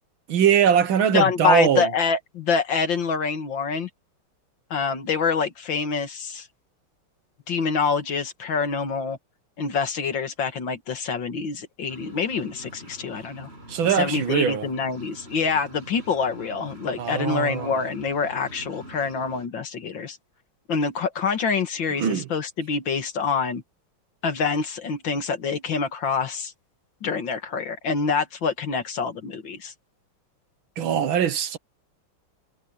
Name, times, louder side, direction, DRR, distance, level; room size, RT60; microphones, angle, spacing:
voice 1, 0.3-1.9 13.7-14.7 17.0-17.8 22.0-22.3 30.8-31.6, right 8 dB, 70° right, 1.9 m, -21 dB
voice 2, 1.1-3.9 4.7-6.5 7.5-9.2 9.6-13.5 13.8-20.2 20.7-23.6 24.2-26.5 27.0-29.7, left 5 dB, 60° left, 2.3 m, -26 dB
sound 1, 11.9-19.5, right 1 dB, 25° right, 8.3 m, -45 dB
omnidirectional pair, 2.4 m